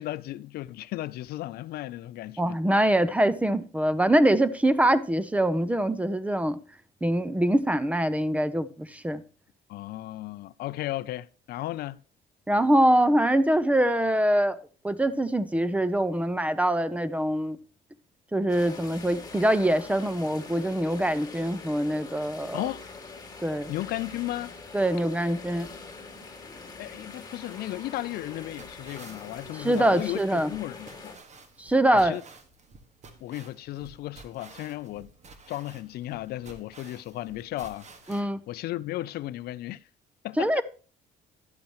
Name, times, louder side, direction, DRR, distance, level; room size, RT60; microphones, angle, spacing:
voice 1, 0.0-2.9 9.7-12.0 22.5-22.8 23.7-24.6 26.8-31.1 31.9-32.2 33.2-35.1 35.5-39.9 40.2-40.6, left 15 dB, 70° left, 0.4 m, -35 dB
voice 2, 2.4-6.6 7.0-9.2 12.5-14.6 14.8-17.6 18.3-22.6 23.4-23.7 24.7-25.7 29.6-30.5 31.6-32.2 38.1-38.4 40.4-40.6, right 1 dB, 10° right, 0.6 m, -24 dB
sound 1, 18.5-31.2, left 4 dB, 20° left, 2.2 m, -44 dB
sound 2, 27.8-38.2, right 3 dB, 45° right, 1.6 m, -51 dB
11.5 x 8.7 x 3.0 m
cardioid pair, 110°, 17 cm